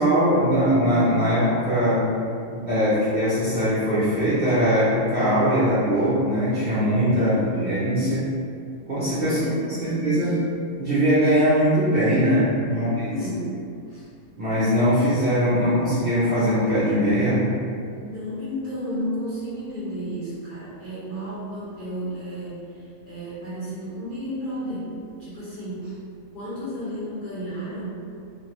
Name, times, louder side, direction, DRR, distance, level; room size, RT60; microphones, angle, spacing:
voice 1, 0.0-2.0 2.5-7.3 7.6-8.2 8.9-9.4 9.8-10.3 10.8-13.1 14.4-17.6, equal, 50° right, -11 dB, 0.8 m, -21 dB
voice 2, 7.1-8.0 9.2-10.4 12.7-13.5 13.9-14.1 17.2-17.3 17.9-24.9 25.2-26.0 26.3-28.0, equal, 35° left, -13 dB, 1.4 m, -33 dB
3.3 x 2.8 x 3.0 m, 2.4 s
omnidirectional pair, 1.6 m